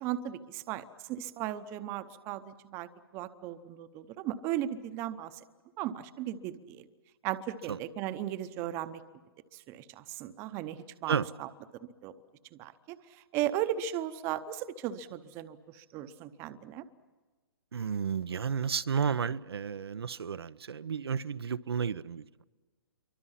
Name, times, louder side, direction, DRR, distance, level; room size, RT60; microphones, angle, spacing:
voice 1, 0.0-5.3 5.8-6.9 7.2-9.0 9.5-11.5 12.0-12.1 12.6-13.0 13.3-16.8, right 11 dB, 20° right, 0.8 m, -36 dB
voice 2, 17.7-22.4, right 7 dB, 85° right, 0.7 m, -32 dB
27.5 x 24.0 x 5.8 m
hypercardioid pair, 160°, 13 cm